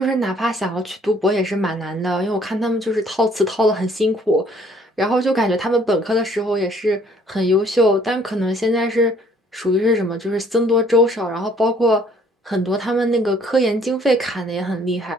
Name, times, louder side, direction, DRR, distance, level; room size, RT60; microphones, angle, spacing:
voice 1, 0.0-9.2 9.5-12.1 12.5-15.1, equal, 5° right, 1.1 m, -20 dB
3.6 x 2.7 x 3.8 m
figure-of-eight pair, 90°, 0 cm